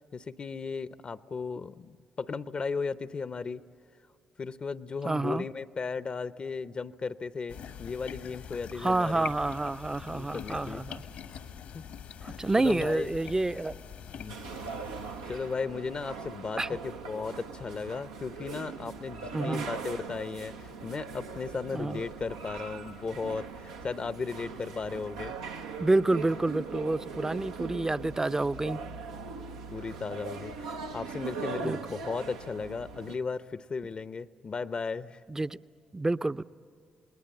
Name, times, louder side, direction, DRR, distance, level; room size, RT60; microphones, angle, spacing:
voice 1, 0.1-3.6 4.4-9.3 10.1-10.8 11.7-11.8 12.2-13.1 14.1-14.4 15.3-25.3 28.6-29.1 29.7-35.2, left 4 dB, 45° left, 14 dB, 0.7 m, -36 dB
voice 2, 5.0-5.4 8.8-11.0 12.2-13.8 16.6-16.7 19.3-19.6 21.7-22.0 25.8-28.8 31.6-31.8 35.3-35.6 35.9-36.4, right 2 dB, 20° right, 14 dB, 0.6 m, -28 dB
sound 1, 7.5-15.6, left 8 dB, 75° left, 1.4 m, -44 dB
sound 2, 14.3-33.2, right 5 dB, 85° right, 0.7 m, -40 dB
28.0 x 20.5 x 8.6 m, 2.2 s
hypercardioid pair, 40°, 2 cm